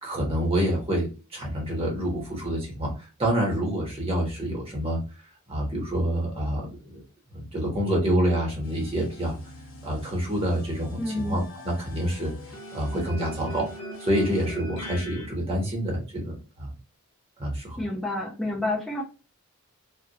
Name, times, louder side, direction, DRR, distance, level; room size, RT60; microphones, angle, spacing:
voice 1, 0.0-5.0 5.5-7.0 7.3-9.4 9.8-12.3 12.7-13.7 14.0-16.8 17.4-17.8, equal, 25° right, -2 dB, 0.8 m, -27 dB
sound 1, 8.6-15.3, equal, 65° left, 0.7 m, -41 dB
voice 2, 11.0-11.4 17.8-19.0, left 2 dB, ahead, -5 dB, 0.6 m, -29 dB
2.2 x 2.1 x 2.7 m, 0.33 s
head